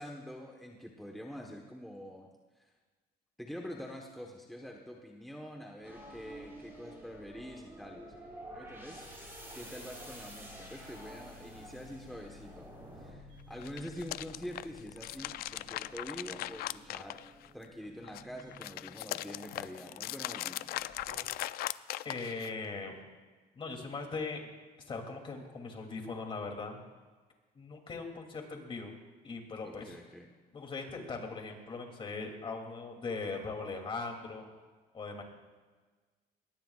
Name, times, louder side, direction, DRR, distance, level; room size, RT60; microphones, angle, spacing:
voice 1, 0.0-2.3 2.5-2.7 3.4-8.2 8.5-9.1 9.5-17.2 17.5-20.9 29.6-30.3, equal, ahead, 0 dB, 1.2 m, -46 dB
sound 1, 4.8-5.1 5.5-21.4, left 1 dB, 40° right, 3.6 m, -56 dB
sound 2, 5.8-13.1, right 1 dB, 15° right, 5.6 m, -49 dB
sound 3, 13.5-17.7 18.0-22.7, left 15 dB, 75° left, 0.4 m, -39 dB
voice 2, 22.0-23.0 23.5-24.5 24.9-26.8 27.5-28.9 29.2-29.9 30.5-34.5 34.9-35.2, left 4 dB, 35° left, 2 dB, 2.8 m, -40 dB
23.0 x 20.5 x 2.4 m, 1.4 s
cardioid pair, 135°, 16 cm